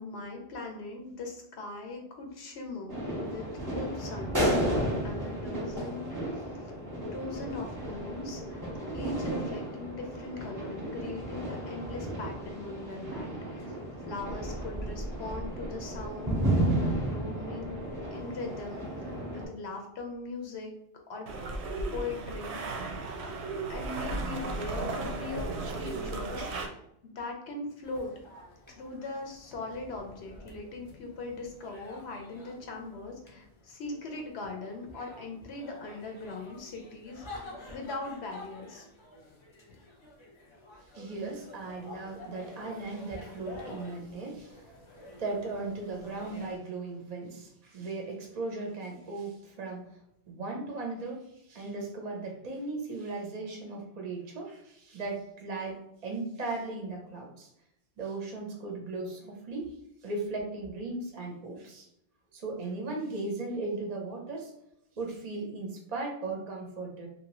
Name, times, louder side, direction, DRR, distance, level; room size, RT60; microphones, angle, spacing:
voice 1, 0.0-3.4 3.8-4.5 5.0-8.7 8.9-16.6 16.9-18.9 19.3-20.7 21.1-21.3 21.9-22.6 23.7-26.7 27.0-28.1 28.7-38.9, left 3 dB, 85° left, 2 dB, 0.9 m, -40 dB
sound 1, 2.9-19.5, right 1 dB, 20° right, 0.8 m, -33 dB
sound 2, 21.3-26.7, right 3 dB, 85° right, 0.8 m, -35 dB
sound 3, 27.8-46.6, left 2 dB, 30° left, 0.7 m, -49 dB
voice 2, 40.9-44.7 45.2-49.8 50.3-57.5 58.0-59.7 60.0-61.9 62.3-64.5 65.0-67.1, right 3 dB, 50° right, 1 dB, 0.6 m, -37 dB
2.8 x 2.6 x 2.9 m, 0.80 s
omnidirectional pair, 1.1 m